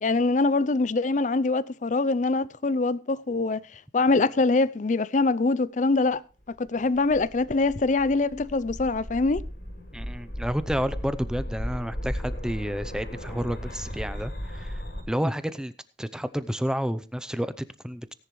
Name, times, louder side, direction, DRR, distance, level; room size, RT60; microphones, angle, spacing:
voice 1, 0.0-3.6 3.9-6.2 6.6-9.4, left 3 dB, 45° left, 0.5 m, -24 dB
sound 1, 6.7-15.0, equal, 60° left, 3.9 m, -36 dB
voice 2, 9.9-14.8 15.1-15.7 16.0-18.1, equal, 5° right, 0.6 m, -30 dB
18.0 x 10.0 x 3.2 m
head